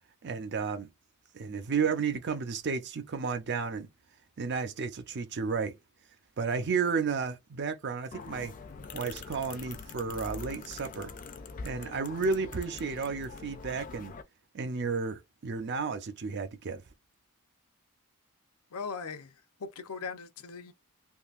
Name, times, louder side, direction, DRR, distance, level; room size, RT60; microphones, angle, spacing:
voice 1, 0.2-0.9 1.3-3.9 4.4-5.8 6.4-8.5 8.9-11.1 11.6-14.1 14.5-16.8, right 5 dB, 50° right, 0.5 m, -32 dB
sound 1, 8.1-14.2, left 4 dB, 35° left, 0.4 m, -44 dB
voice 2, 18.7-20.7, left 5 dB, 85° left, 0.6 m, -40 dB
3.6 x 2.6 x 2.4 m
head